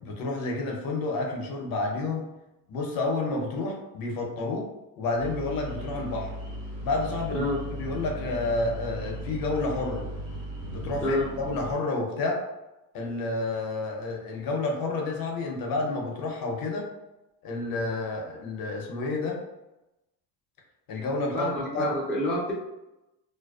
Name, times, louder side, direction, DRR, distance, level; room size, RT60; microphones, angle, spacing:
voice 1, 0.0-2.3 2.7-4.7 5.0-6.3 6.8-10.0 10.6-12.4 12.9-16.9 17.4-19.4 20.9-21.9, left 2 dB, 45° left, 0 dB, 0.7 m, -30 dB
sound 1, 5.2-11.8, right 1 dB, 60° right, 1.3 m, -37 dB
voice 2, 21.3-22.5, left 1 dB, 5° left, -6 dB, 0.5 m, -28 dB
2.5 x 2.1 x 2.3 m, 0.97 s
supercardioid pair, 95°, 50 cm